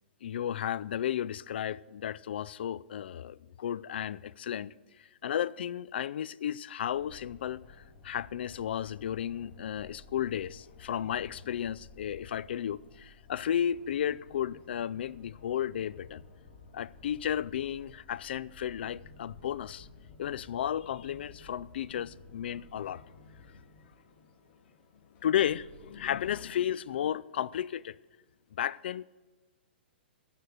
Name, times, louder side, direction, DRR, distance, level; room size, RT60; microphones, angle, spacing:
voice 1, 0.2-4.7 5.0-7.6 8.0-16.2 16.7-19.9 20.2-23.0 23.5-23.6 25.2-27.9 28.5-29.0, left 10 dB, 65° left, 0.4 m, -33 dB
sound 1, 6.8-26.2, left 3 dB, 35° left, 2.2 m, -54 dB
15.0 x 5.7 x 6.4 m
hypercardioid pair, 130°, 6 cm